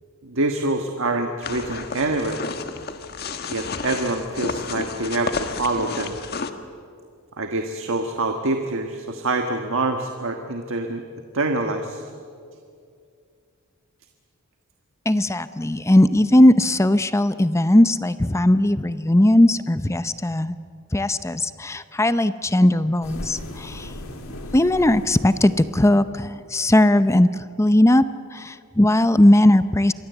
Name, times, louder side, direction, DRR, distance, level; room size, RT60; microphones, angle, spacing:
voice 1, 0.2-2.4 3.5-6.2 7.4-11.0 11.3-12.0, right 2 dB, 65° right, 5 dB, 1.5 m, -25 dB
sound 1, 1.4-6.5, left 4 dB, 45° left, 1.4 m, -31 dB
voice 2, 15.1-20.6 20.9-23.9 24.5-27.3 27.6-28.0 28.3-29.9, left 1 dB, 15° left, 13 dB, 0.6 m, -18 dB
sound 2, 23.0-26.0, left 1 dB, 70° left, 2.8 m, -37 dB
26.5 x 22.5 x 8.1 m, 2.3 s
head